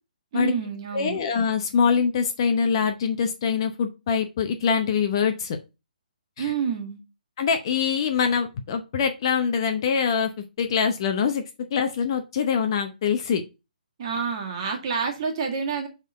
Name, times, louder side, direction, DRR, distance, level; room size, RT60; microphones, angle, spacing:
voice 1, 0.3-1.2 6.4-7.0 14.0-15.9, right 6 dB, 30° right, 1 dB, 1.7 m, -28 dB
voice 2, 0.9-5.6 6.4-6.5 7.4-10.3 10.6-11.4 11.7-13.4, left 6 dB, 30° left, 6 dB, 0.7 m, -24 dB
6.4 x 3.7 x 4.7 m, 0.27 s
hypercardioid pair, 165°, 5 cm